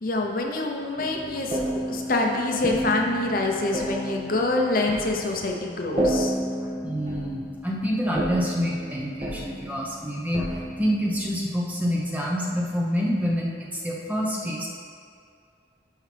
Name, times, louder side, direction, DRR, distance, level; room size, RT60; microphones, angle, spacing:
voice 1, 0.0-6.4, left 2 dB, 50° left, 1 dB, 0.7 m, -26 dB
sound 1, 1.0-11.4, right 1 dB, 35° right, 1.9 m, -32 dB
voice 2, 6.6-14.7, equal, 10° right, -3 dB, 0.9 m, -27 dB
12.0 x 4.9 x 3.4 m, 2.3 s
head